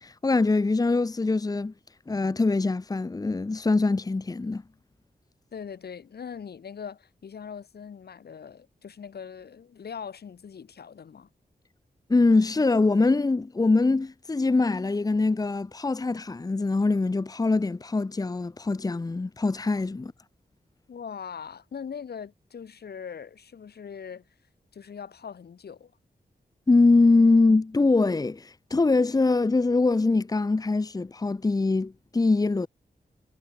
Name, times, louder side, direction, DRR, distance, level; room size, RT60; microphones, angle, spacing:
voice 1, 0.0-1.7 2.1-4.6 12.1-20.1 26.7-32.7, left 3 dB, 20° left, 1.1 m, -23 dB
voice 2, 5.5-11.3 20.9-24.2 24.7-25.9, left 7 dB, 80° left, 2.9 m, -41 dB
wide cardioid pair, 170°, 16 cm